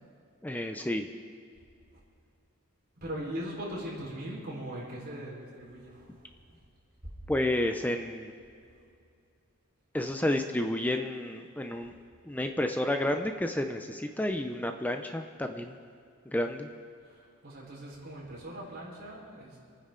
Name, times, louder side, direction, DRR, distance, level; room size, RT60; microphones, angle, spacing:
voice 1, 0.4-1.1 7.3-8.3 9.9-11.9 12.2-15.7 16.3-16.7, left 1 dB, 10° left, 6 dB, 0.6 m, -30 dB
voice 2, 3.0-6.3 10.1-10.3 17.0-19.6, right 1 dB, 45° right, -5 dB, 4.5 m, -40 dB
27.5 x 9.9 x 3.9 m, 2.4 s
head